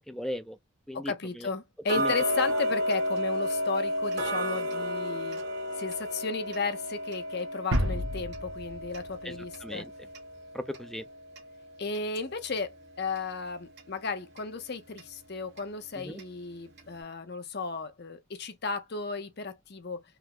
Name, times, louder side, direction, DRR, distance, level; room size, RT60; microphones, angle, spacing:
voice 1, 0.1-0.6 0.9-1.5 2.0-2.1 9.2-9.3 9.6-9.9 10.5-11.0 16.0-16.2, equal, ahead, 0.5 m, -37 dB
voice 2, 0.9-5.4 5.8-9.9 11.8-20.0, left 4 dB, 55° left, 0.7 m, -34 dB
Tick-tock, 1.9-12.7 13.1-13.2 13.8-13.9 14.4-14.5 15.0-15.1 15.6-15.7 16.2-16.3 16.8-16.9, equal, 55° right, 1.3 m, -33 dB
sound 1, 7.7-10.4, equal, 70° right, 0.9 m, -32 dB
3.5 x 2.1 x 2.8 m
head